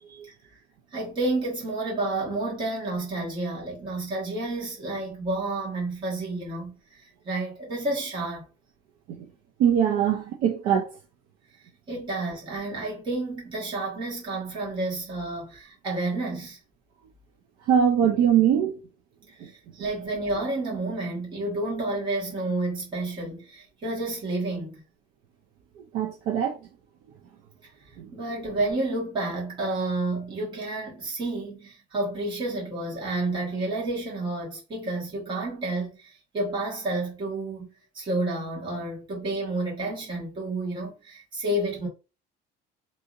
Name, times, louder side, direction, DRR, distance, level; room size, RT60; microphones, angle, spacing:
voice 1, 0.9-6.8 7.2-8.5 11.9-16.6 19.4-24.8 28.1-41.9, right 2 dB, 25° right, 1.5 m, -30 dB
voice 2, 9.6-10.9 17.7-18.7 19.4-19.5 25.9-26.6 28.0-28.1, right 8 dB, 55° right, 0.5 m, -22 dB
2.7 x 2.7 x 2.5 m
cardioid pair, 175°, 18 cm